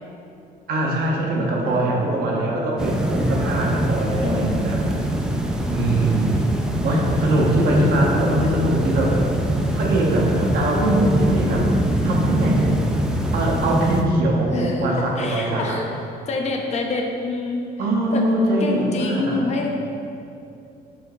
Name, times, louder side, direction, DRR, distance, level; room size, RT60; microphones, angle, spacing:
voice 1, 0.7-4.8 5.7-6.4 6.8-9.2 9.8-11.7 12.0-12.8 13.3-15.8 17.8-19.5, right 1 dB, 65° right, -2 dB, 0.9 m, -22 dB
sound 1, 2.8-14.0, right 1 dB, 5° right, 0.3 m, -23 dB
voice 2, 4.2-4.7 8.3-8.5 14.5-14.9 15.2-15.9 16.3-17.6 18.1-18.3 18.6-19.7, left 3 dB, 40° left, 1 dB, 0.6 m, -27 dB
5.0 x 2.8 x 3.8 m, 2.7 s
cardioid pair, 110°, 17 cm